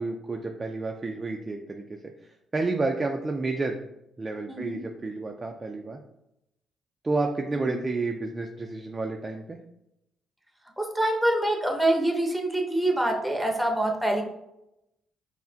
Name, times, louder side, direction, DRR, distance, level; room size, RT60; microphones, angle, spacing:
voice 1, 0.0-3.8 4.2-6.0 7.0-9.6, right 3 dB, 25° right, 2 dB, 0.3 m, -30 dB
voice 2, 10.8-14.2, right 1 dB, 5° right, 1 dB, 0.8 m, -25 dB
5.5 x 2.1 x 2.7 m, 0.84 s
cardioid pair, 90°, 0 cm